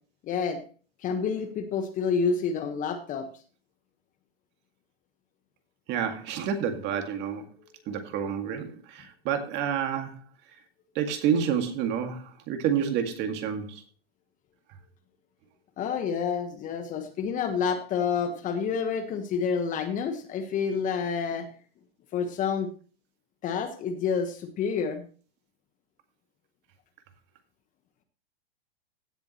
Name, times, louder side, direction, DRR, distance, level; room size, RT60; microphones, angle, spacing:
voice 1, 0.2-0.6 1.0-3.3 15.8-21.5 22.1-22.7 23.4-25.0, left 6 dB, 25° left, 1.3 m, -28 dB
voice 2, 5.9-7.4 7.9-10.2 11.0-13.8, right 8 dB, 35° right, 2.0 m, -29 dB
16.5 x 7.1 x 3.0 m
hypercardioid pair, 130°, 30 cm